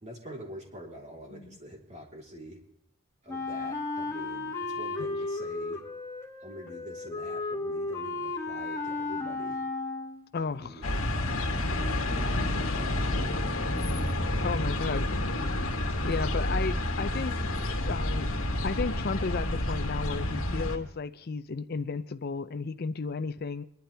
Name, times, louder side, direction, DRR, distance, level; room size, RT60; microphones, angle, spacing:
voice 1, 0.0-2.6 3.2-5.8 6.4-9.6 10.3-13.8, equal, 30° right, 3.8 m, -46 dB
Wind instrument woodwind instrument, 3.3-10.3, left 3 dB, 15° left, 2.0 m, -34 dB
voice 2, 10.3-10.9 14.4-15.2 16.0-17.5 17.9-18.3 18.6-23.6, left 4 dB, 45° left, 0.5 m, -33 dB
sound 1, 10.8-20.8, left 1 dB, 70° left, 2.5 m, -29 dB
24.5 x 12.0 x 3.4 m
head